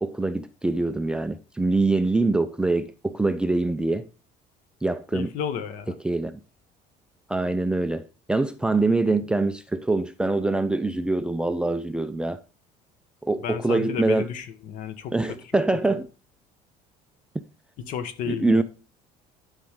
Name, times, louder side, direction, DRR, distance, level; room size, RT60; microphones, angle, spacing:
voice 1, 0.0-4.1 4.8-5.3 6.0-6.4 7.3-12.4 13.2-14.3 15.1-16.1 18.3-18.6, right 2 dB, 5° right, 0.4 m, -24 dB
voice 2, 5.1-5.9 13.4-15.4 15.9-16.0 17.8-18.6, left 7 dB, 60° left, 1.2 m, -32 dB
10.5 x 5.2 x 3.6 m
cardioid pair, 160°, 15 cm